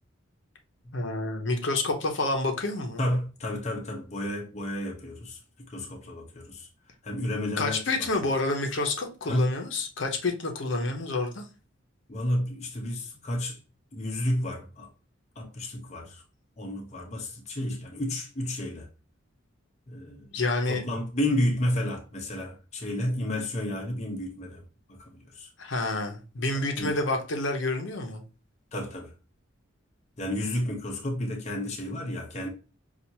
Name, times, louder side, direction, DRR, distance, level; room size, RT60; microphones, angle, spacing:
voice 1, 0.9-3.0 7.6-11.5 20.3-20.8 25.6-28.2, left 2 dB, 65° left, 0.8 m, -28 dB
voice 2, 3.0-5.4 5.7-6.7 7.0-8.1 9.3-9.6 12.1-13.6 13.9-14.9 15.4-16.2 16.6-18.9 19.9-20.3 20.7-24.6 24.9-25.5 26.5-27.0 28.7-29.1 30.2-32.5, left 1 dB, 35° left, 0.8 m, -31 dB
5.7 x 2.5 x 2.8 m
head